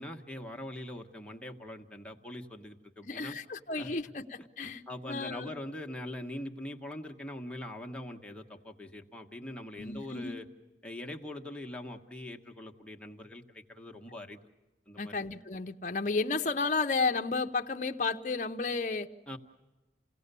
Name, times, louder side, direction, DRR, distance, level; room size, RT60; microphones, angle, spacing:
voice 1, 0.0-3.3 3.8-3.9 4.6-10.4 10.8-14.4 14.9-15.1 19.3-19.4, left 1 dB, 5° left, 1 dB, 1.2 m, -42 dB
voice 2, 3.0-5.5 9.8-10.3 15.0-19.1, left 4 dB, 45° left, 6 dB, 0.7 m, -32 dB
29.0 x 17.5 x 6.8 m, 1.2 s
head